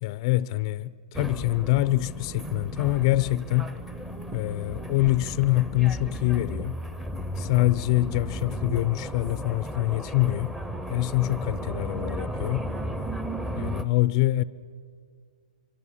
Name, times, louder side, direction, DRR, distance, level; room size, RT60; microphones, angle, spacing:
voice 1, 0.0-3.7 4.3-6.8 7.4-10.6 10.9-12.7 13.6-14.4, left 17 dB, 40° left, 0.6 m, -25 dB
sound 1, 1.1-13.8, right 1 dB, 5° right, 0.9 m, -35 dB
25.5 x 24.5 x 8.7 m
hypercardioid pair, 150°, 5 cm